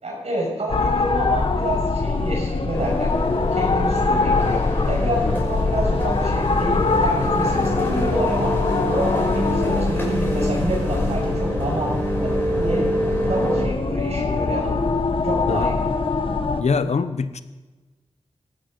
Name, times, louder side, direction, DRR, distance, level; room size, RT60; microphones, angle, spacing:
voice 1, 0.0-3.1 3.5-4.6 4.9-8.5 8.8-12.8 13.2-14.8 15.2-15.8, right 1 dB, 75° right, -3 dB, 6.4 m, -28 dB
sound 1, 0.7-16.6, left 3 dB, 50° left, 1.1 m, -23 dB
sound 2, 2.7-13.6, equal, 20° left, 5.4 m, -26 dB
voice 2, 16.6-17.4, left 5 dB, 75° left, 12 dB, 0.9 m, -23 dB
17.0 x 15.5 x 5.2 m, 1.2 s
wide cardioid pair, 85°, 11 cm